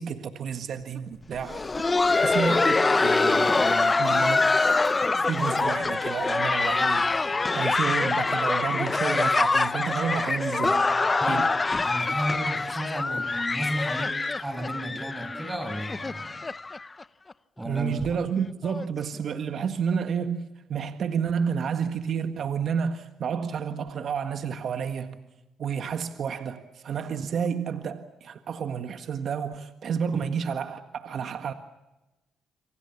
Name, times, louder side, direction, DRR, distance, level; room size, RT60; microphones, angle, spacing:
voice 1, 0.0-1.7 2.2-4.9 5.3-7.3 7.5-11.5 17.6-20.4 20.7-25.3 25.6-31.5, right 7 dB, 60° right, 1.6 m, -30 dB
Laughter, 1.3-17.0 17.3-17.4 18.0-18.1 18.6-18.8 19.9-20.0, left 3 dB, 25° left, 0.8 m, -25 dB
voice 2, 11.8-16.4 17.6-18.2 30.1-30.2, equal, 10° right, 6.6 m, -33 dB
28.0 x 25.0 x 7.1 m
cardioid pair, 90°, 0 cm